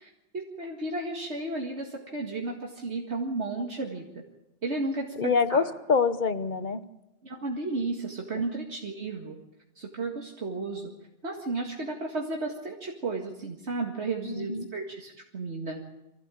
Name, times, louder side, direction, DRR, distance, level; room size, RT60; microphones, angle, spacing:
voice 1, 0.0-4.1 4.6-5.6 7.2-9.3 9.8-10.9 11.2-15.8, right 3 dB, 70° right, 0 dB, 2.3 m, -33 dB
voice 2, 5.2-6.8 14.3-14.7, left 5 dB, 45° left, 12 dB, 1.1 m, -25 dB
25.0 x 15.0 x 8.5 m, 0.95 s
omnidirectional pair, 1.2 m